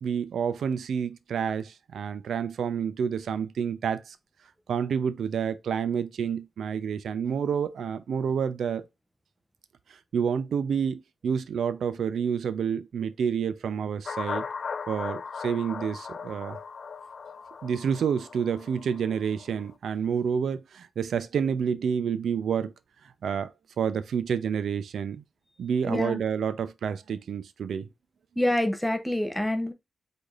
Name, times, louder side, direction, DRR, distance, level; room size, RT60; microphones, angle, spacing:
voice 1, 0.0-4.2 4.7-8.8 10.1-14.5 14.9-16.6 17.6-22.7 23.2-23.5 23.8-25.2 25.6-27.9, right 7 dB, 80° right, 0.5 m, -29 dB
sound 1, 14.1-19.7, left 5 dB, 40° left, 0.3 m, -38 dB
voice 2, 25.9-26.2 28.4-29.7, left 1 dB, 5° left, 0.6 m, -26 dB
4.9 x 4.1 x 2.4 m
wide cardioid pair, 180°, 0 cm